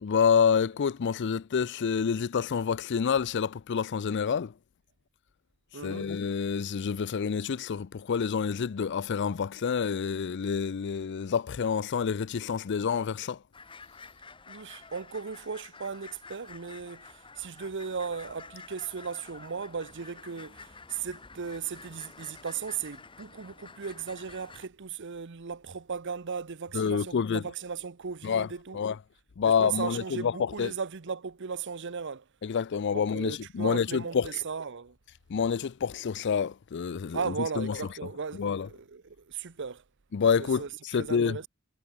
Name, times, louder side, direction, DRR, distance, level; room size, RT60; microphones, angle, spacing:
voice 1, 0.0-4.5 5.8-13.4 26.7-27.4 28.2-28.5 28.7-29.0 29.4-30.7 32.4-34.4 35.3-37.8 38.3-38.7 40.1-41.4, left 6 dB, 55° left, 0.4 m, -28 dB
voice 2, 5.7-6.1 14.5-28.8 29.5-32.2 32.9-35.0 37.1-39.8 40.4-40.7 41.0-41.5, right 6 dB, 60° right, 0.8 m, -36 dB
sound 1, 13.5-24.7, left 4 dB, 25° left, 1.5 m, -49 dB
head